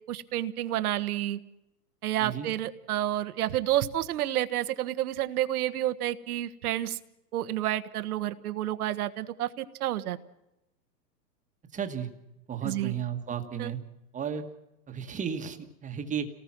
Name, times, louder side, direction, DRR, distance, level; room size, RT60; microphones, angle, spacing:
voice 1, 0.1-1.4 2.0-7.0 7.3-10.2 12.6-12.9 13.6-13.7, right 13 dB, 60° right, 12 dB, 1.4 m, -30 dB
voice 2, 11.7-12.1 12.5-13.8 14.1-14.5 14.9-16.3, right 8 dB, 15° right, 6 dB, 1.7 m, -33 dB
29.5 x 19.0 x 6.1 m, 0.91 s
hypercardioid pair, 135°, 50 cm